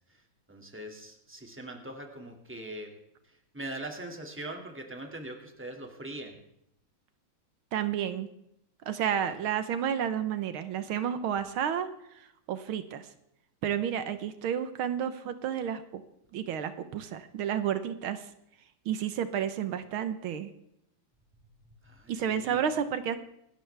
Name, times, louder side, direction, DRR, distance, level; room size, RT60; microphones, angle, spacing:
voice 1, 0.5-2.9 3.2-6.4 21.8-22.7, right 1 dB, 5° right, 3 dB, 2.1 m, -42 dB
voice 2, 7.7-8.3 8.8-11.9 12.1-13.1 13.6-16.0 16.3-18.3 18.8-20.5 22.1-23.2, right 9 dB, 80° right, 11 dB, 1.8 m, -31 dB
26.0 x 13.0 x 3.4 m, 0.78 s
omnidirectional pair, 2.3 m